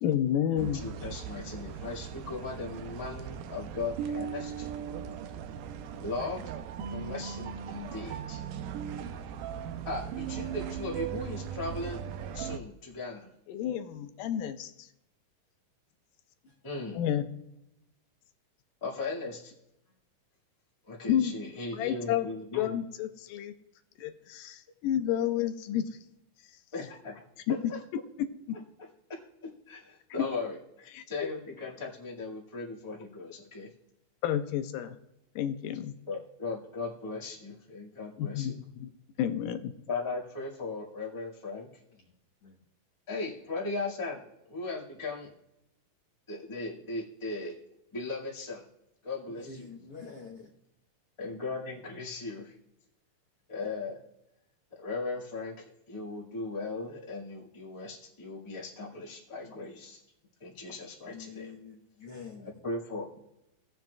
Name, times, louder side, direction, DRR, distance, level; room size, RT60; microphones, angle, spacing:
voice 1, 0.0-0.8 13.5-14.9 16.9-17.2 21.1-21.3 21.7-22.3 22.6-23.5 24.0-25.8 27.5-27.6 28.2-28.6 30.2-30.3 31.0-31.3 34.2-35.0 35.4-35.9 38.2-38.9 39.2-39.7, left 10 dB, 85° left, 2.3 m, -30 dB
voice 2, 0.6-4.7 6.0-6.5 6.9-8.4 9.8-12.0 12.3-13.3 16.6-17.1 18.8-19.5 20.9-22.8 26.7-27.2 27.5-27.8 28.8-33.7 36.1-38.6 39.9-41.7 43.1-44.2 44.5-45.3 46.3-47.6 47.9-48.6 49.0-49.7 51.2-52.5 53.5-54.0 54.7-60.0 60.4-61.5 62.4-63.2, left 3 dB, 15° left, 1.2 m, -38 dB
sound 1, 0.6-12.6, right 8 dB, 80° right, 2.2 m, -38 dB
voice 3, 49.5-50.5 61.0-62.5, left 5 dB, 65° left, 1.5 m, -46 dB
18.0 x 7.6 x 2.3 m
omnidirectional pair, 3.9 m